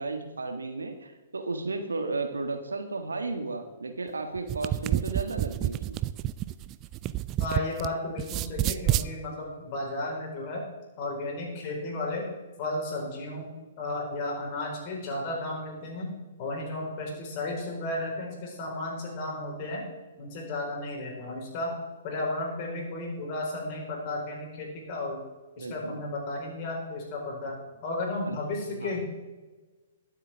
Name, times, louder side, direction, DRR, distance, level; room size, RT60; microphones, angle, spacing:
voice 1, 0.0-6.0 25.6-26.0 28.2-28.4 28.8-29.0, right 3 dB, 70° right, 6 dB, 1.5 m, -34 dB
sound 1, 4.4-7.9 8.2-9.1, right 14 dB, 25° right, 0.4 m, -29 dB
voice 2, 7.4-10.6 11.0-12.3 12.6-13.5 13.8-16.1 16.4-19.8 20.2-21.8 22.0-25.2 25.6-27.6 27.8-29.0, left 2 dB, 35° left, -1 dB, 4.3 m, -33 dB
21.5 x 7.8 x 3.5 m, 1.3 s
figure-of-eight pair, 115°, 0 cm